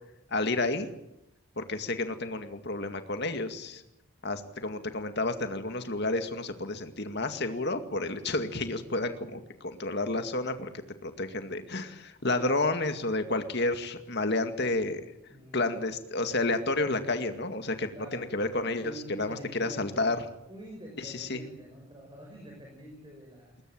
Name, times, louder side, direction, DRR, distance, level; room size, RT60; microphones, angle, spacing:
voice 1, 0.3-0.9 1.6-3.8 4.2-10.7 11.0-15.0 15.5-20.2 21.0-21.4, left 2 dB, 50° left, 8 dB, 2.2 m, -30 dB
voice 2, 15.2-15.8 17.9-20.1 20.5-23.7, right 1 dB, 20° right, 0 dB, 6.1 m, -46 dB
21.0 x 20.5 x 8.9 m, 0.85 s
head